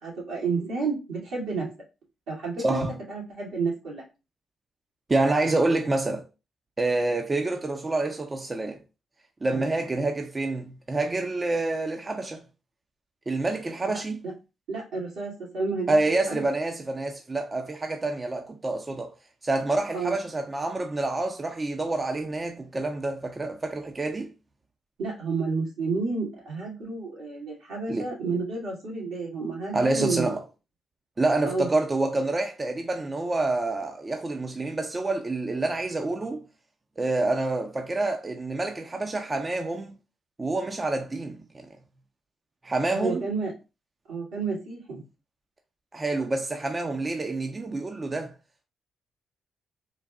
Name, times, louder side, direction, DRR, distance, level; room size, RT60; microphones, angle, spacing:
voice 1, 0.0-1.7 2.3-2.8 3.1-4.0 9.5-9.7 13.9-14.0 14.7-16.4 19.9-20.1 25.0-30.3 31.4-31.7 42.9-43.5 44.1-45.0, right 4 dB, 80° right, 2.1 m, -30 dB
voice 2, 2.6-2.9 5.1-6.3 6.8-8.8 9.4-12.4 13.3-14.2 15.9-19.1 19.4-24.3 27.9-28.1 29.7-30.4 31.2-36.4 37.0-40.0 40.4-41.4 42.6-43.2 45.9-48.3, right 2 dB, 30° right, 0.5 m, -27 dB
3.9 x 2.3 x 3.5 m
supercardioid pair, 55°, 0 cm